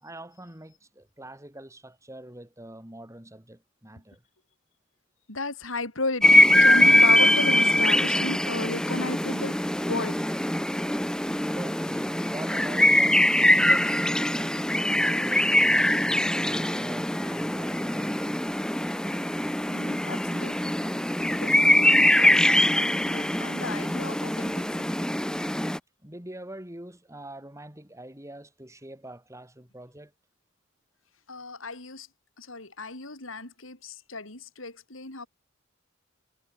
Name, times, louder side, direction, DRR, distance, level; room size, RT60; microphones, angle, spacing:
voice 1, 0.0-4.2 11.5-13.2 13.5-18.4 26.0-30.1, right 1 dB, 15° right, 3.9 m, -44 dB
voice 2, 5.3-10.2 19.7-20.8 21.2-24.6 31.3-32.1 32.4-35.3, left 2 dB, 75° left, 5.1 m, -35 dB
sound 1, 6.2-25.8, left 1 dB, 5° left, 0.8 m, -22 dB
head